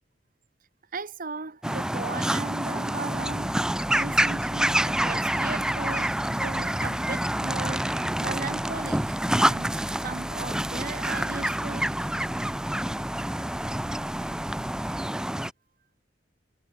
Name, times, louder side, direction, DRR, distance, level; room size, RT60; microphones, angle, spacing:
voice 1, 0.9-3.5 4.0-11.9 13.8-14.0, right 3 dB, 50° right, 1.3 m, -37 dB
sound 1, 1.6-15.5, right 1 dB, 5° right, 0.3 m, -27 dB
sound 2, 3.1-15.1, equal, 65° left, 3.8 m, -44 dB
head